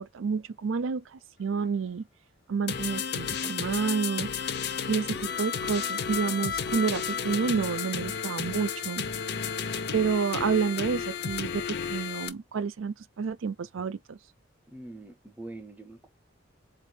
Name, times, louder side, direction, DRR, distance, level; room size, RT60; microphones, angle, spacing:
voice 1, 0.0-2.0 2.5-4.3 4.9-9.0 9.9-14.2, right 5 dB, 85° right, 0.5 m, -29 dB
sound 1, 2.7-12.3, left 7 dB, 55° left, 0.6 m, -32 dB
voice 2, 14.7-16.1, right 2 dB, 10° right, 0.6 m, -44 dB
4.2 x 2.5 x 4.7 m
head